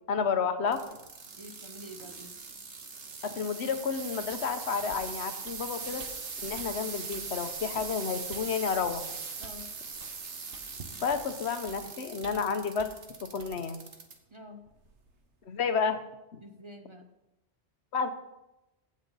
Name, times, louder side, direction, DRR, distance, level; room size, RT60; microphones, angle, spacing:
voice 1, 0.1-0.8 3.2-6.0 6.4-9.0 11.0-12.9 13.2-13.8 15.5-16.0 16.3-16.4 17.9-18.1, left 6 dB, 75° left, 9 dB, 1.1 m, -31 dB
sound 1, 0.7-14.1 14.7-15.1 15.8-15.9, right 5 dB, 80° right, 1.5 m, -41 dB
voice 2, 1.4-2.3 9.4-9.7 14.3-14.6 16.4-17.1, equal, 30° right, 5 dB, 0.7 m, -47 dB
sound 2, 4.3-4.4 4.9-5.1 5.5-5.6 6.0-6.1 6.6-6.7 7.1-7.2 7.8-7.9 8.3-8.5 8.8-9.0 9.4-9.6 10.0-10.1 10.5-10.7 11.1-11.3 11.7-11.8 12.2-12.5 12.8-12.9 13.4-13.5, right 4 dB, 55° right, 1.1 m, -50 dB
16.0 x 6.3 x 4.0 m, 0.94 s
omnidirectional pair, 1.1 m